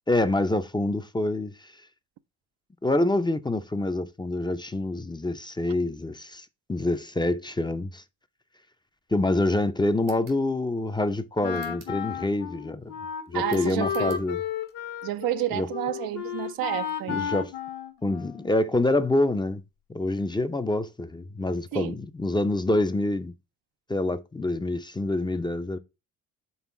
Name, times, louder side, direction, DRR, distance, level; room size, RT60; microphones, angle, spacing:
voice 1, 0.1-1.5 2.8-8.0 9.1-12.9 13.3-14.4 15.5-15.7 17.1-17.5 18.0-19.6 19.9-23.3 23.9-25.8, left 2 dB, 10° left, 0.5 m, -26 dB
sound 1, 10.0-10.4 11.5-12.0 13.5-14.2, right 6 dB, 90° right, 2.0 m, -51 dB
Wind instrument woodwind instrument, 11.4-18.6, left 8 dB, 55° left, 1.1 m, -33 dB
voice 2, 13.3-14.1 15.0-17.3 21.7-22.0, right 15 dB, 65° right, 0.6 m, -30 dB
5.5 x 3.6 x 5.9 m
hypercardioid pair, 55°, 38 cm